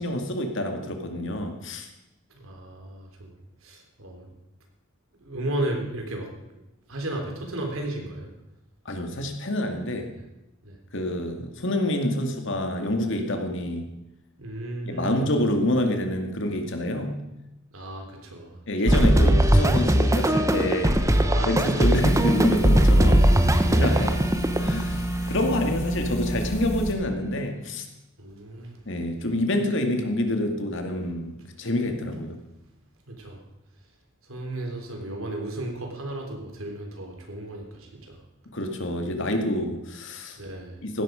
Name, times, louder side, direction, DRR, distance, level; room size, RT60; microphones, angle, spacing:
voice 1, 0.0-1.9 8.9-10.1 10.9-13.9 14.9-17.1 18.7-21.1 21.5-23.2 23.8-24.1 24.6-27.9 28.9-32.4 38.5-40.4 40.8-41.0, left 1 dB, 65° left, 4 dB, 2.2 m, -27 dB
voice 2, 2.3-3.3 3.6-4.3 5.2-6.6 6.9-8.3 10.6-10.8 14.4-15.3 17.7-18.6 21.2-22.1 23.0-23.3 23.7-24.1 25.1-25.3 28.2-28.8 33.1-33.4 34.2-38.2 40.4-40.8, right 1 dB, 90° right, 2 dB, 3.4 m, -34 dB
sound 1, 18.9-24.9, right 1 dB, 15° right, 1.0 m, -20 dB
sound 2, 21.9-26.9, right 1 dB, 35° left, 1.9 m, -29 dB
15.5 x 12.5 x 5.1 m, 0.93 s
head